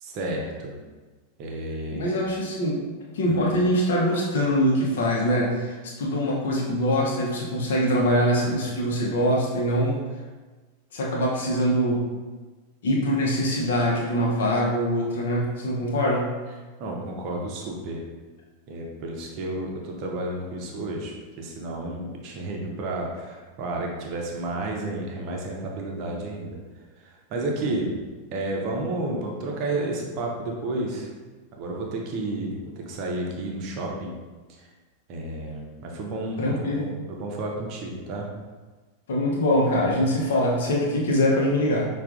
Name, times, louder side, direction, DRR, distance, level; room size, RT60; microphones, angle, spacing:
voice 1, 0.0-0.8 1.4-2.1 3.3-3.5 16.8-18.0 18.7-26.6 27.0-27.9 28.3-31.1 31.6-34.1 35.1-38.3, right 2 dB, 40° right, 0 dB, 0.7 m, -31 dB
voice 2, 1.9-2.8 3.1-10.0 10.9-12.0 12.8-16.3 36.4-36.9 39.1-41.9, equal, 60° left, -3 dB, 0.9 m, -23 dB
5.7 x 2.4 x 2.4 m, 1.3 s
figure-of-eight pair, 90°, 0 cm